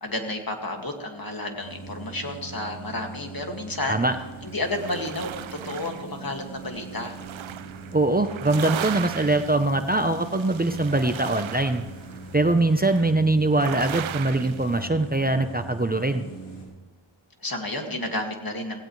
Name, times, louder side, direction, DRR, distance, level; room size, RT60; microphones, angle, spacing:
voice 1, 0.0-4.0 4.4-7.2 17.4-18.8, left 2 dB, 45° left, 3 dB, 2.2 m, -31 dB
sound 1, 1.6-16.7, right 4 dB, 85° left, 4.3 m, -41 dB
sound 2, 4.0-14.8, right 11 dB, 80° right, 0.6 m, -38 dB
voice 2, 7.9-11.8 12.3-16.2, right 2 dB, 20° right, 7 dB, 0.8 m, -22 dB
17.5 x 16.0 x 3.3 m, 1.1 s
cardioid pair, 45°, 47 cm